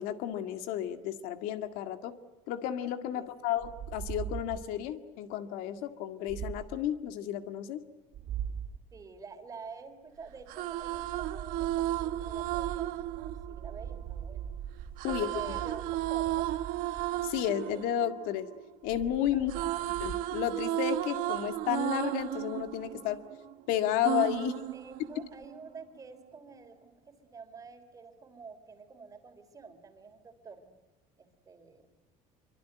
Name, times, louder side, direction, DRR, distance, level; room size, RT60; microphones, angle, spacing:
voice 1, 0.0-2.1 2.5-7.8 15.0-15.4 17.2-18.5 18.8-19.5 20.0-23.2 23.7-24.6, left 11 dB, 75° left, 8 dB, 1.9 m, -32 dB
voice 2, 3.1-3.5 8.9-14.5 15.0-15.8 16.1-16.5 19.3-19.9 24.7-30.7 31.2-31.9, right 5 dB, 25° right, 7 dB, 3.4 m, -48 dB
sound 1, 3.6-4.8 6.3-6.9 8.1-8.8 10.7-17.5 18.8-20.2, right 9 dB, 50° right, 1.9 m, -41 dB
sound 2, 10.3-14.4 15.0-19.0 19.3-23.5 24.0-25.5, right 15 dB, 70° right, 1.4 m, -34 dB
26.0 x 24.0 x 9.3 m, 1.1 s
cardioid pair, 150°, 15 cm